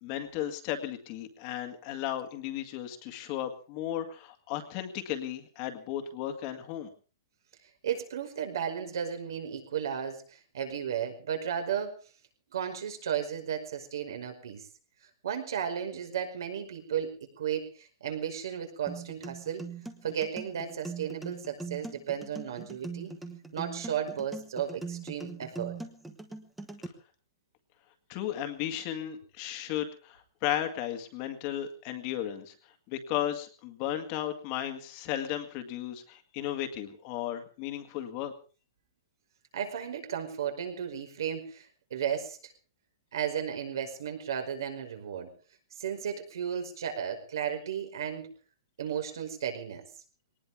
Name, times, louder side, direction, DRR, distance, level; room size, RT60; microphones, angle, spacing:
voice 1, 0.0-6.9 28.1-32.5 32.9-38.3, left 11 dB, 30° left, 7 dB, 1.9 m, -35 dB
voice 2, 7.8-12.0 12.5-14.7 15.2-19.6 20.0-23.1 23.5-25.8 39.5-42.5 43.1-45.3 45.8-48.3 48.8-49.8, right 8 dB, 70° right, 5 dB, 5.2 m, -34 dB
sound 1, 18.9-26.9, right 4 dB, 5° right, 1.2 m, -41 dB
21.5 x 19.0 x 3.6 m, 0.37 s
hypercardioid pair, 175°, 2 cm